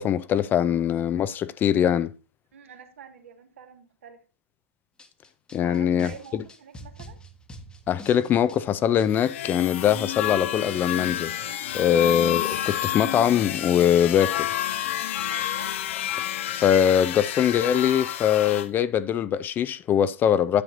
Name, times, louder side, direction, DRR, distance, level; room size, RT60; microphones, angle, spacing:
voice 1, 0.0-2.1 5.5-6.4 7.9-11.3 11.7-14.5 16.6-20.6, left 9 dB, 30° left, 0.4 m, -22 dB
voice 2, 2.5-4.2 5.6-7.2 15.3-15.7, right 7 dB, 75° right, 1.8 m, -46 dB
sound 1, 5.0-9.8, equal, 10° left, 1.0 m, -46 dB
sound 2, 9.1-18.7, left 12 dB, 65° left, 0.7 m, -30 dB
9.9 x 7.1 x 2.6 m
hypercardioid pair, 115°, 7 cm